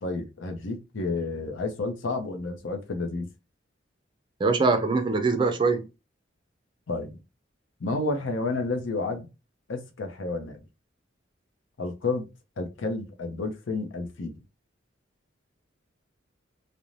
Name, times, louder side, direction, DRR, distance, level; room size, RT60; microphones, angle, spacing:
voice 1, 0.0-3.3 6.9-7.2 7.8-9.3 9.7-10.6 11.8-12.3 12.6-14.3, left 3 dB, 85° left, 0.6 m, -30 dB
voice 2, 4.4-5.9, right 4 dB, 25° right, 0.4 m, -23 dB
2.5 x 2.1 x 3.0 m
head